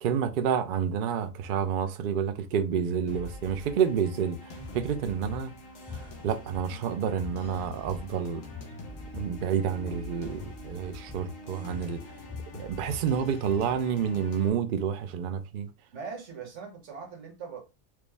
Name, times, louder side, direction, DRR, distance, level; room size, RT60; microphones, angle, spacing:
voice 1, 0.0-5.5 5.9-8.4 9.1-12.0 12.5-15.7, right 7 dB, 85° right, 0.4 m, -29 dB
sound 1, 3.1-14.5, equal, 70° left, 1.2 m, -44 dB
sound 2, 4.6-4.8 5.3-5.5 5.9-6.9 7.2-7.4 7.7-8.2 8.5-9.4 9.7-10.0 10.4-10.6 11.1-11.3 11.7-13.7, left 5 dB, 10° left, 0.9 m, -43 dB
voice 2, 15.9-17.6, right 5 dB, 60° right, 1.4 m, -40 dB
4.6 x 2.0 x 3.3 m
omnidirectional pair, 1.4 m